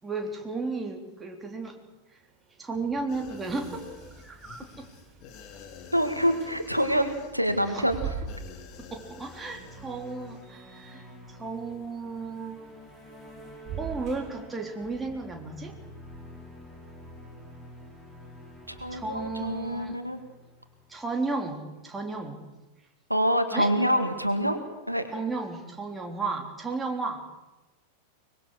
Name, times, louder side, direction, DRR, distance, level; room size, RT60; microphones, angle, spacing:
voice 1, 0.0-1.8 2.6-3.9 4.2-4.9 7.7-7.8 8.8-12.6 13.8-15.8 18.9-20.0 20.9-22.4 23.5-23.7 25.1-27.2, right 3 dB, 15° right, 2 dB, 3.8 m, -34 dB
sound 1, 1.7-20.0, right 7 dB, 35° right, 7.6 m, -46 dB
sound 2, 3.1-10.4 10.8-10.9, left 6 dB, 40° left, 2.8 m, -48 dB
voice 2, 5.9-8.0 18.7-20.2 23.1-24.6 24.9-25.1, equal, 90° right, 8 dB, 2.1 m, -26 dB
sound 3, 8.9-21.3, left 1 dB, 10° left, 6.0 m, -49 dB
24.0 x 21.5 x 6.6 m, 1.1 s
figure-of-eight pair, 90°, 0 cm